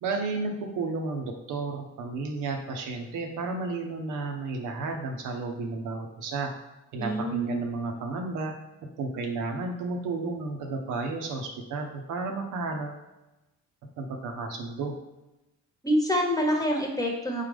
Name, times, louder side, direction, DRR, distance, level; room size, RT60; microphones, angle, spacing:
voice 1, 0.0-6.5 6.9-8.5 9.0-13.0 14.0-14.9, right 3 dB, 85° right, 2 dB, 0.8 m, -32 dB
voice 2, 7.0-7.6 15.8-17.4, equal, 10° left, 0 dB, 1.0 m, -26 dB
4.2 x 3.7 x 3.4 m, 0.99 s
cardioid pair, 90°, 30 cm